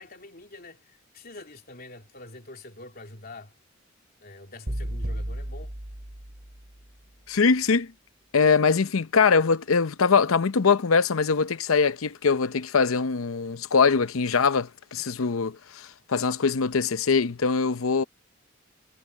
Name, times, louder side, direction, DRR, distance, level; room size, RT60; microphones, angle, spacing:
voice 1, 0.0-3.5 4.2-5.7, left 2 dB, 50° left, 3.2 m, -45 dB
sound 1, 4.7-6.9, right 1 dB, 50° right, 2.6 m, -34 dB
voice 2, 7.3-7.9 8.3-18.0, left 5 dB, 85° left, 0.7 m, -22 dB
head